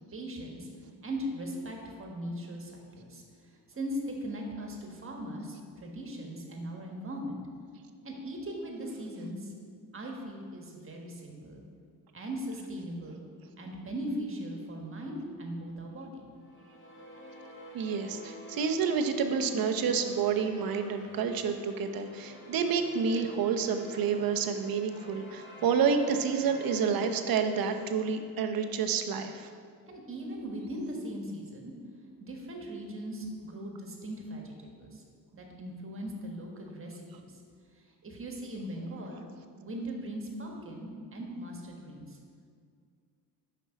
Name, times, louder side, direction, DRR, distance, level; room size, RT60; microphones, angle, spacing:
voice 1, 0.1-0.7 1.0-7.4 8.0-9.5 9.9-11.6 12.1-13.2 13.6-16.3 29.9-31.7 32.2-35.0 35.3-37.3 38.0-39.2 39.6-42.2, equal, 30° right, 1 dB, 1.4 m, -39 dB
sound 1, 16.4-28.7, equal, 30° left, 1.6 m, -49 dB
voice 2, 17.7-29.5, right 6 dB, 55° right, 6 dB, 0.8 m, -29 dB
6.3 x 5.5 x 5.1 m, 2.2 s
cardioid pair, 90°, 41 cm